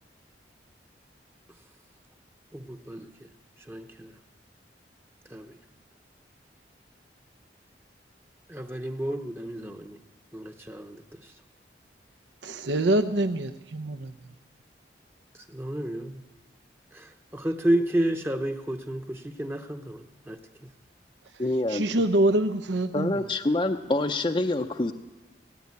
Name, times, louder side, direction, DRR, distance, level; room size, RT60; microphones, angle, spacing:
voice 1, 2.5-3.3 3.7-4.1 5.3-5.6 8.5-10.0 10.3-11.3 15.3-16.2 16.9-20.7, right 1 dB, 15° right, 5 dB, 0.8 m, -31 dB
voice 2, 12.4-14.3 21.3-21.4 21.7-23.3, right 1 dB, 85° right, 9 dB, 0.8 m, -25 dB
voice 3, 21.4-21.8 22.9-24.9, left 2 dB, 25° left, 6 dB, 0.6 m, -26 dB
17.5 x 16.5 x 9.6 m, 1.1 s
head